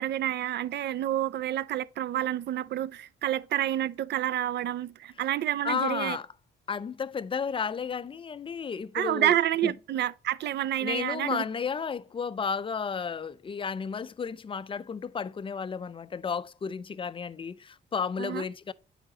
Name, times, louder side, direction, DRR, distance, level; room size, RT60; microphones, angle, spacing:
voice 1, 0.0-6.2 8.9-11.4 18.2-18.4, right 12 dB, 60° right, 0.4 m, -29 dB
voice 2, 5.6-6.3 6.7-9.3 9.6-9.7 10.8-18.7, left 6 dB, 25° left, 0.4 m, -33 dB
8.7 x 5.0 x 2.8 m
cardioid pair, 90°, 20 cm